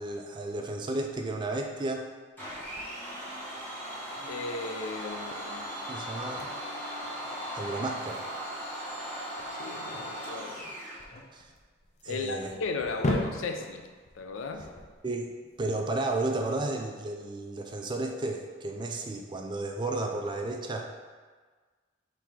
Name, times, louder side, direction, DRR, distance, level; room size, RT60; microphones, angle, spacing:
voice 1, 0.0-2.1 5.9-6.5 7.6-8.3 11.3-11.4 12.0-12.5 15.0-15.3 15.6-20.9, right 2 dB, 25° right, 3 dB, 0.3 m, -33 dB
Domestic sounds home sounds, 2.4-11.0, equal, 10° left, 1.2 m, -38 dB
sound 1, 2.5-15.6, left 1 dB, 35° left, 0.5 m, -40 dB
voice 2, 4.3-5.7 9.6-10.7 12.1-13.9 14.2-14.7, left 3 dB, 90° left, 5 dB, 0.4 m, -36 dB
3.8 x 2.8 x 4.6 m, 1.5 s
head